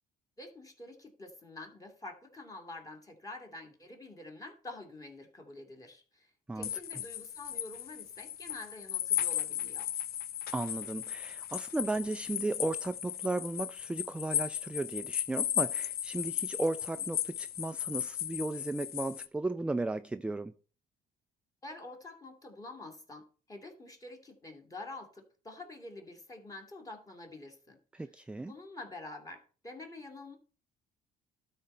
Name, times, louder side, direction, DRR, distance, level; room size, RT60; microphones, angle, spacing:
voice 1, 0.4-6.3 6.6-9.9 21.6-27.8 28.5-30.4, left 2 dB, 20° left, 2.4 m, -47 dB
sound 1, 6.6-19.3, left 11 dB, 65° left, 0.6 m, -36 dB
voice 2, 10.5-20.5 27.9-28.5, right 2 dB, 5° right, 0.3 m, -35 dB
12.5 x 4.3 x 5.5 m
cardioid pair, 110°, 17 cm